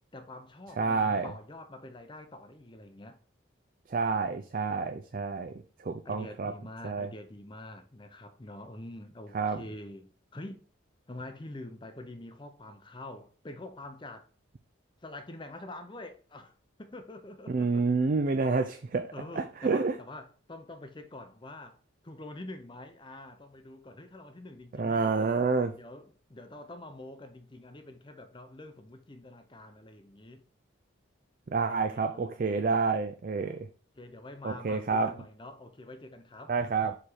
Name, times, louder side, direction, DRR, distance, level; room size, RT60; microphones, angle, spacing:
voice 1, 0.1-3.2 6.0-10.6 11.1-14.3 15.0-16.5 16.8-17.9 19.1-21.8 22.0-25.3 25.7-30.4 31.9-32.4 33.5-33.6 34.0-36.6, left 1 dB, 25° left, 0.6 m, -46 dB
voice 2, 0.8-1.3 3.9-5.5 5.8-6.5 6.8-7.1 9.3-9.6 17.5-19.1 19.4-20.0 24.8-25.7 31.5-33.7 34.4-35.1 36.5-37.0, right 4 dB, 40° right, 0.4 m, -28 dB
4.8 x 4.2 x 4.8 m
head